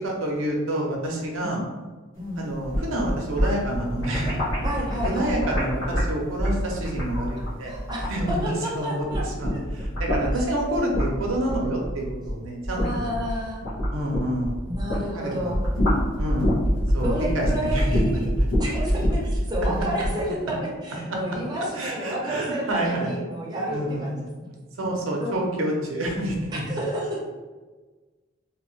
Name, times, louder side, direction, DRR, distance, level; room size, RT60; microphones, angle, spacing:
voice 1, 0.0-1.6 2.4-4.4 5.0-7.7 8.1-8.4 8.7-13.2 13.9-14.6 15.1-15.5 16.2-16.5 16.9-18.2 21.5-23.1 23.7-24.2 24.8-26.6, right 1 dB, 75° right, -1 dB, 0.6 m, -28 dB
voice 2, 2.2-2.5 4.6-5.4 7.6-9.6 12.7-13.6 14.7-15.6 17.0-18.3 18.6-24.1 24.4-24.5 25.2-25.4 26.5-27.2, equal, 20° right, -4 dB, 0.6 m, -31 dB
sound 1, 2.5-8.7 9.0-15.1 15.4-20.2, equal, 75° left, 1.0 m, -26 dB
2.9 x 2.2 x 3.1 m, 1.3 s
head